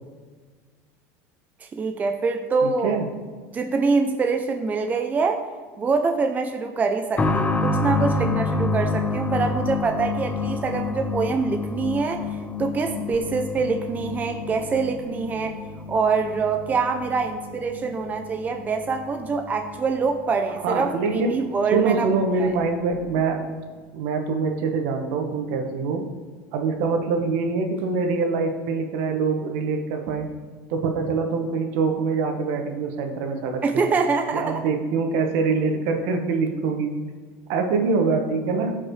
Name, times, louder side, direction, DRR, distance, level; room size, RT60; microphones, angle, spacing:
voice 1, 1.6-3.0 3.5-5.4 5.8-12.3 12.6-15.6 15.9-22.1 22.4-22.5 33.6-34.6, right 4 dB, 20° right, 5 dB, 0.6 m, -25 dB
voice 2, 2.6-3.1 20.6-21.4 21.7-23.4 23.9-26.0 26.5-30.3 30.7-33.8 34.3-36.9 37.5-38.8, right 4 dB, 70° right, 4 dB, 1.4 m, -24 dB
sound 1, 7.2-21.6 21.9-22.0 22.9-23.0, left 3 dB, 20° left, 0.7 m, -29 dB
14.5 x 5.8 x 3.3 m, 1.5 s
supercardioid pair, 120°, 7 cm